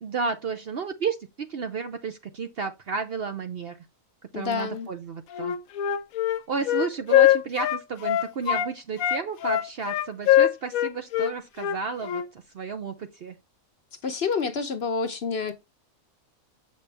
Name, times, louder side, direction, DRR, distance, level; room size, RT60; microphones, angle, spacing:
voice 1, 0.0-3.8 4.3-5.6 6.5-13.4, right 5 dB, 55° right, 0.7 m, -32 dB
voice 2, 4.3-4.9 14.0-15.5, left 5 dB, 50° left, 0.9 m, -28 dB
Wind instrument woodwind instrument, 5.3-8.7 9.0-12.3, left 12 dB, 75° left, 1.0 m, -22 dB
7.1 x 5.2 x 3.3 m
omnidirectional pair, 1.5 m